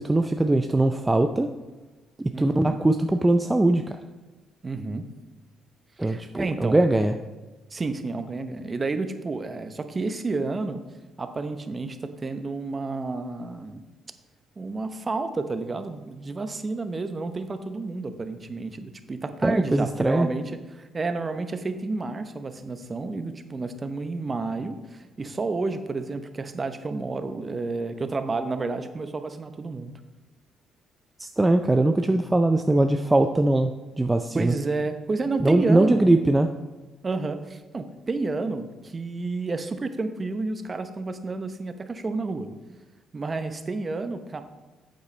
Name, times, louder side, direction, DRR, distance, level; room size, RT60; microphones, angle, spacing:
voice 1, 0.0-1.5 2.2-4.0 6.0-7.1 19.4-20.3 31.2-34.5 35.4-36.5, right 2 dB, 15° right, 6 dB, 0.5 m, -21 dB
voice 2, 2.3-2.8 4.6-5.1 6.0-6.8 7.7-10.8 11.2-13.8 14.6-29.9 34.3-36.1 37.0-42.5 43.1-44.4, right 3 dB, 35° right, 9 dB, 0.8 m, -30 dB
8.3 x 8.0 x 3.3 m, 1.2 s
supercardioid pair, 65°, 0 cm